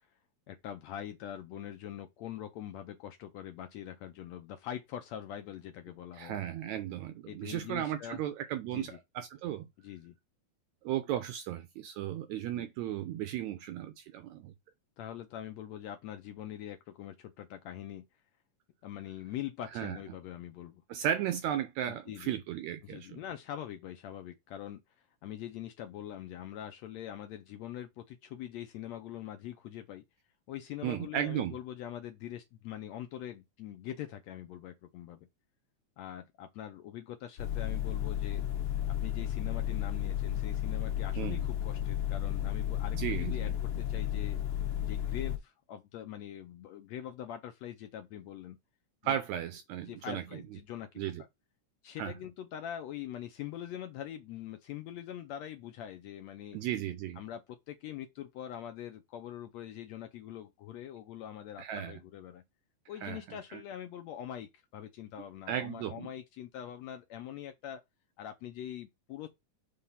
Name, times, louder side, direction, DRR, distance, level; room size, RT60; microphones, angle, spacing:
voice 1, 0.5-6.4 7.2-8.2 8.7-9.0 9.8-10.2 12.5-12.7 15.0-18.0 18.8-20.8 21.9-22.4 22.8-24.8 25.2-30.0 30.5-35.3 36.0-38.5 38.9-44.4 44.8-48.6 49.0-49.2 49.9-51.0 51.8-56.6 57.2-62.4 62.9-67.8 68.2-69.3, left 11 dB, 75° left, 1.6 m, -43 dB
voice 2, 6.2-9.7 10.8-14.5 19.8-20.0 20.9-23.2 30.8-31.6 41.2-41.5 42.9-43.5 49.0-50.4 51.0-51.2 52.0-52.1 56.5-57.2 61.6-62.0 63.0-63.2 63.5-63.6 65.5-66.1, right 11 dB, 80° right, 1.7 m, -35 dB
sound 1, 37.4-45.4, left 11 dB, 60° left, 1.7 m, -33 dB
5.8 x 3.4 x 5.5 m
omnidirectional pair, 3.7 m